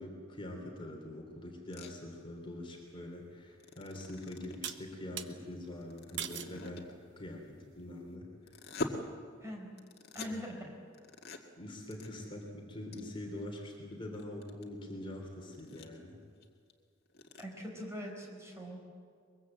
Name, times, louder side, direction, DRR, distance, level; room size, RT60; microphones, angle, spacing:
voice 1, 0.0-6.8 7.2-8.3 10.2-10.3 11.6-16.2, left 1 dB, 25° left, 1 dB, 3.3 m, -44 dB
sound 1, 1.7-1.9 3.5-4.8 5.8-6.9 8.4-8.9 9.8-10.3 10.9-11.4 11.8-12.1 12.4-12.5 12.9-13.0 13.4-13.5 14.0-14.6 15.1-15.2 15.5-16.0 16.4-16.5 16.7-16.8 17.1-17.4, left 2 dB, 50° left, 2.0 m, -42 dB
sound 2, 3.3-3.4 4.6-5.3 6.2-6.6 7.2-7.6, right 9 dB, 60° right, 1.1 m, -41 dB
voice 2, 10.1-10.6 17.4-18.8, equal, 15° right, 0 dB, 4.6 m, -42 dB
23.0 x 22.5 x 7.9 m, 2.2 s
head